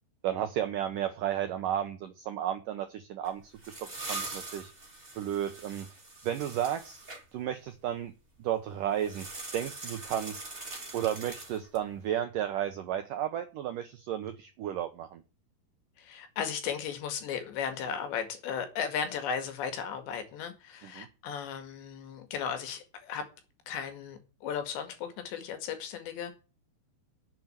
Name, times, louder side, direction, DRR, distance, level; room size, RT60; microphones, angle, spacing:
voice 1, 0.2-4.7 5.2-7.0 7.3-8.1 8.4-9.3 9.5-10.4 10.9-15.2 21.0-21.1, right 10 dB, 85° right, 1.9 m, -33 dB
sound 1, 3.2-7.2 9.0-11.9, right 3 dB, 15° right, 2.9 m, -42 dB
voice 2, 16.0-23.2 23.7-26.3, left 7 dB, 75° left, 4.3 m, -36 dB
10.5 x 7.8 x 9.0 m
omnidirectional pair, 5.1 m